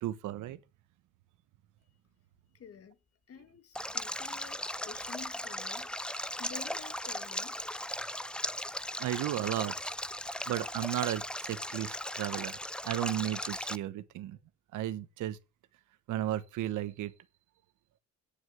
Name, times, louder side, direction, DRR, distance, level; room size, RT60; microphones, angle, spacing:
voice 1, 0.0-0.6 9.0-9.7 10.5-12.6 12.8-14.4 14.7-15.4 16.1-17.1, right 13 dB, 90° right, 1.1 m, -34 dB
voice 2, 2.5-3.0 3.3-5.9 6.4-7.6, left 6 dB, 50° left, 1.7 m, -50 dB
Stream, 3.7-13.8, left 1 dB, 5° left, 0.5 m, -37 dB
9.7 x 6.4 x 7.7 m
cardioid pair, 90°, 30 cm